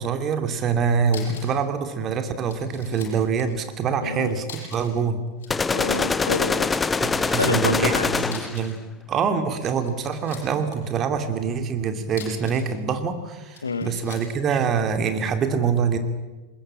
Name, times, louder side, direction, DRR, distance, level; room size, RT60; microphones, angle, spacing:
voice 1, 0.0-5.2 7.0-16.0, right 6 dB, 30° right, 7 dB, 2.7 m, -25 dB
sound 1, 0.7-0.8 1.1-1.6 1.9-2.0 2.5-3.5 4.4-5.0 5.3-6.0 6.3-6.8 8.2-8.8 9.5-10.8 12.0-12.7 13.5-14.3, left 7 dB, 60° left, 7.4 m, -42 dB
voice 2, 4.0-4.3 5.7-6.7 7.2-8.1 13.6-13.9, left 4 dB, 75° left, 12 dB, 1.6 m, -27 dB
sound 2, 5.5-8.7, left 4 dB, 15° left, 0.8 m, -24 dB
22.0 x 21.0 x 8.9 m, 1.2 s
figure-of-eight pair, 90°, 0 cm